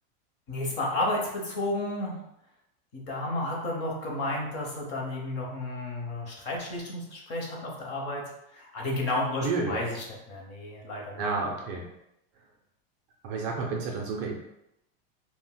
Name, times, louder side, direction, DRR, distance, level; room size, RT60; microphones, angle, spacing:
voice 1, 0.5-2.2 2.9-8.2 8.5-11.2, left 2 dB, 35° left, -1 dB, 0.8 m, -32 dB
voice 2, 9.4-9.9 11.2-11.9 13.2-14.3, right 4 dB, 35° right, 1 dB, 0.4 m, -30 dB
2.4 x 2.1 x 3.8 m, 0.84 s
supercardioid pair, 155°, 30 cm